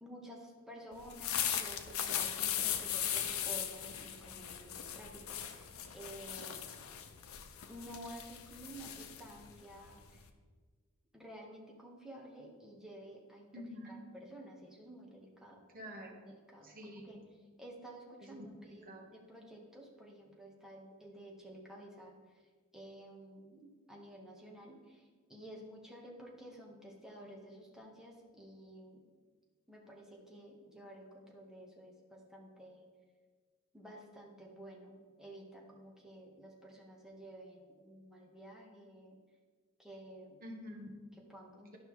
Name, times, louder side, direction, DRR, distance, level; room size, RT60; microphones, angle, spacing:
voice 1, 0.0-6.7 7.7-10.3 11.1-13.6 13.9-15.7 16.3-17.2 17.6-22.1 22.7-29.0 29.7-32.8 33.7-39.2 39.8-40.4 41.1-41.8, right 1 dB, 5° right, -2 dB, 1.2 m, -52 dB
sound 1, 1.0-10.3, left 9 dB, 85° left, 0.6 m, -38 dB
voice 2, 13.5-14.0 15.7-16.3 16.6-17.3 18.3-18.5 18.9-19.1 40.4-41.0, equal, 45° right, 2 dB, 1.1 m, -47 dB
11.5 x 5.4 x 3.1 m, 1.5 s
head